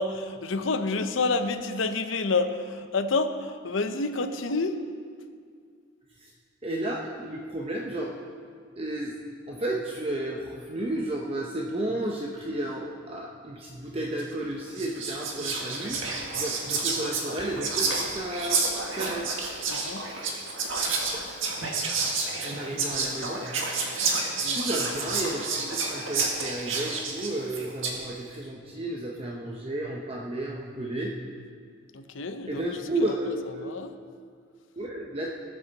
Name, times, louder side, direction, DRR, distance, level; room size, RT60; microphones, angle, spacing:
voice 1, 0.0-4.8 19.7-20.0 24.4-24.6 31.9-32.6 33.1-33.2 33.6-33.9, left 3 dB, 80° left, 8 dB, 0.8 m, -28 dB
voice 2, 6.6-8.2 8.8-9.1 9.5-18.6 19.0-19.3 21.1-21.2 22.4-23.5 24.5-31.1 32.5-33.7 34.8-35.3, right 1 dB, 30° right, -2 dB, 0.8 m, -32 dB
Whispering, 14.2-14.4 14.8-28.0, right 4 dB, 85° right, 1.8 m, -30 dB
20.0 x 8.7 x 4.1 m, 2.1 s
head